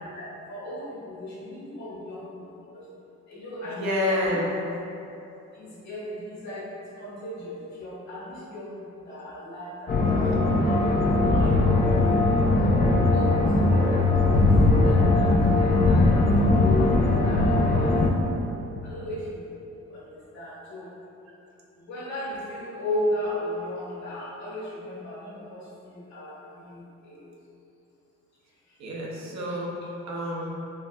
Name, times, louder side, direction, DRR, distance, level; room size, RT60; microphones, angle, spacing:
voice 1, 0.2-2.2 2.7-2.8 3.3-4.2 5.6-6.7 7.0-8.7 9.1-12.4 13.1-14.3 14.7-18.0 18.8-19.4 19.9-20.0 20.3-20.9 21.8-26.3 26.6-27.2, left 1 dB, 60° left, -7 dB, 1.4 m, -35 dB
voice 2, 3.6-4.5 28.8-29.7 30.1-30.5, left 1 dB, 65° right, -4 dB, 0.8 m, -28 dB
sound 1, 9.9-18.1, left 2 dB, 30° left, 0.4 m, -20 dB
4.5 x 2.6 x 2.3 m, 2.9 s
cardioid pair, 90°, 30 cm